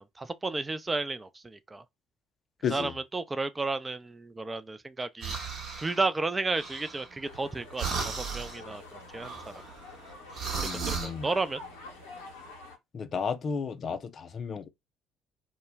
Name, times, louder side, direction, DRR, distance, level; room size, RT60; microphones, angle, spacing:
voice 1, 0.0-1.8 2.6-5.4 5.8-9.4 10.6-11.6, right 3 dB, 20° right, 0.4 m, -33 dB
voice 2, 2.6-2.9 10.5-11.3 12.9-14.7, left 6 dB, 45° left, 0.4 m, -33 dB
sound 1, 5.2-6.0 6.5-7.5 7.8-8.6 9.2-11.1, right 5 dB, 55° right, 0.8 m, -36 dB
sound 2, 7.2-12.8, left 3 dB, 85° left, 0.7 m, -47 dB
2.1 x 2.1 x 3.1 m
hypercardioid pair, 50°, 0 cm